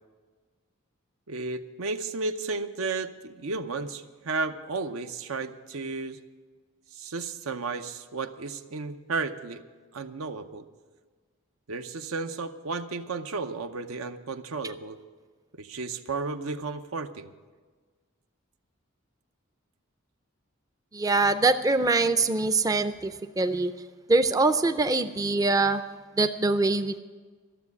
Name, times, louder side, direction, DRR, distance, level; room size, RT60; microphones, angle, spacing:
voice 1, 1.3-6.2 6.9-9.6 9.9-10.7 11.7-15.0 15.5-17.3, right 3 dB, 85° right, 9 dB, 0.8 m, -33 dB
voice 2, 20.9-23.7 24.1-25.8 26.2-27.0, right 3 dB, 15° right, 9 dB, 0.4 m, -23 dB
13.0 x 7.4 x 9.6 m, 1.4 s
head